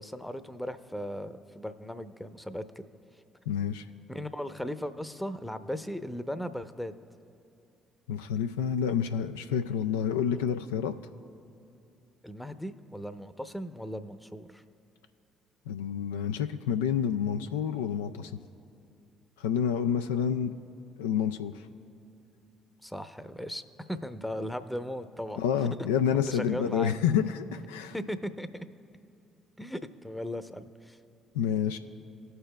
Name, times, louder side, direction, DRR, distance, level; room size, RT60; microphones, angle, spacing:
voice 1, 0.0-2.8 4.1-6.9 10.3-10.4 12.2-14.6 22.8-23.6 23.9-25.4 26.3-26.9 27.9-28.6 29.6-31.0, equal, 5° left, 11 dB, 0.7 m, -37 dB
voice 2, 3.5-3.8 8.1-10.9 15.7-18.4 19.4-20.5 21.0-21.5 25.4-27.9 31.3-31.8, left 8 dB, 80° left, 7 dB, 0.3 m, -28 dB
19.0 x 6.7 x 2.3 m, 2.6 s
hypercardioid pair, 50°, 0 cm